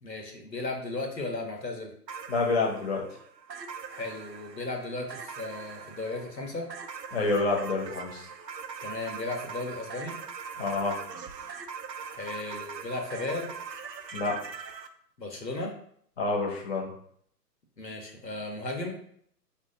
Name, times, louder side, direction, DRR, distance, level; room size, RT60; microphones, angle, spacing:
voice 1, 0.0-1.9 3.9-6.7 8.8-10.2 12.1-13.5 15.2-15.7 17.8-19.0, left 2 dB, 80° left, 2 dB, 1.4 m, -35 dB
sound 1, 2.1-14.9, right 6 dB, 80° right, 0.7 m, -41 dB
voice 2, 2.3-3.0 7.1-8.3 10.6-11.0 14.1-14.4 16.2-16.9, left 3 dB, 40° left, -1 dB, 1.3 m, -28 dB
4.3 x 3.1 x 3.9 m, 0.64 s
figure-of-eight pair, 130°, 49 cm